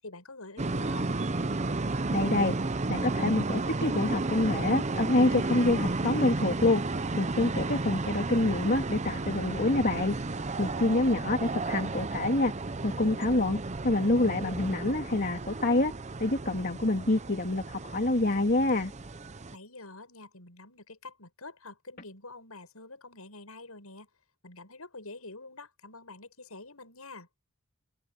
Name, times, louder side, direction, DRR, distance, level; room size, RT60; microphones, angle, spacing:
voice 1, 0.0-1.1 10.8-10.9 11.4-11.6 19.5-24.1 24.4-27.3, left 3 dB, 80° left, 8.0 m, -47 dB
sound 1, 0.6-19.5, right 3 dB, 30° right, 0.8 m, -33 dB
voice 2, 2.1-2.6 2.9-6.8 7.2-10.2 10.6-12.5 12.8-13.6 13.8-15.9 16.2-18.9, left 2 dB, 45° left, 2.5 m, -26 dB
head